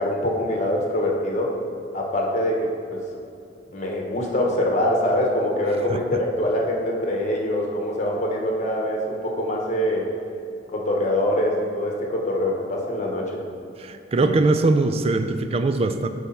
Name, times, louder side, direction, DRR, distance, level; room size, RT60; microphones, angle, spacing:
voice 1, 0.0-1.5 1.9-3.0 3.7-10.1 10.7-13.4 14.1-14.4, left 1 dB, 40° left, -1 dB, 1.1 m, -24 dB
voice 2, 13.8-16.1, right 3 dB, 35° right, 8 dB, 0.4 m, -21 dB
8.2 x 3.4 x 5.5 m, 2.5 s
head